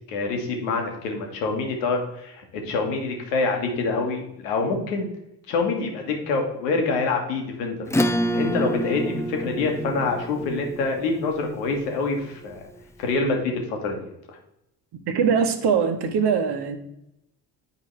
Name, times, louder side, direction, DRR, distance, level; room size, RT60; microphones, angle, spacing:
voice 1, 0.1-5.1 5.5-7.8 8.3-12.6 13.0-14.1, left 3 dB, 75° left, 2 dB, 1.5 m, -26 dB
Acoustic guitar / Strum, 7.9-12.8, equal, 5° left, 0.5 m, -28 dB
voice 2, 14.9-16.8, right 6 dB, 55° right, 7 dB, 1.1 m, -22 dB
9.3 x 4.9 x 3.2 m, 0.83 s
hypercardioid pair, 50°, 49 cm